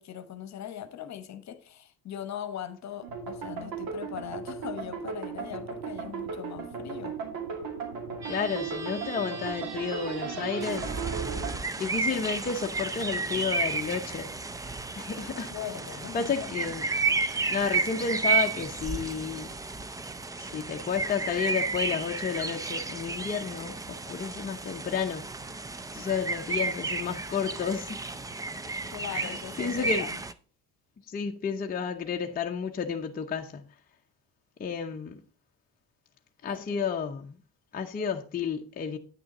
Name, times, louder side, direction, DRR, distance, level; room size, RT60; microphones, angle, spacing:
voice 1, 0.0-7.2 15.5-16.7 28.9-30.2 36.5-36.8 37.9-38.1, left 10 dB, 45° left, 1.0 m, -40 dB
sound 1, 3.0-11.5, right 6 dB, 70° right, 2.5 m, -36 dB
voice 2, 8.2-10.9 11.8-14.3 14.9-15.5 16.1-16.8 17.5-19.5 20.3-25.2 25.9-28.1 29.1-30.1 31.1-33.6 34.6-35.2 36.4-37.4 37.7-39.0, left 6 dB, 25° left, 0.7 m, -31 dB
sound 2, 8.2-12.6, right 4 dB, 45° right, 1.4 m, -43 dB
sound 3, 10.6-30.3, right 4 dB, 10° right, 0.3 m, -32 dB
9.1 x 6.2 x 4.1 m
cardioid pair, 125°, 37 cm